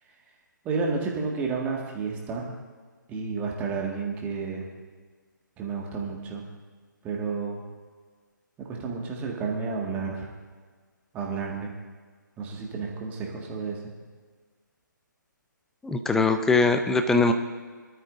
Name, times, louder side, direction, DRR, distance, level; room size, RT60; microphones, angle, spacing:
voice 1, 0.6-2.5 3.1-4.7 5.6-6.4 7.0-7.6 8.6-10.3 11.1-11.7 12.4-13.9, right 4 dB, 15° right, -1 dB, 1.9 m, -31 dB
voice 2, 15.8-17.3, left 3 dB, 5° left, 8 dB, 0.5 m, -21 dB
22.5 x 12.5 x 2.6 m, 1.5 s
figure-of-eight pair, 145°, 11 cm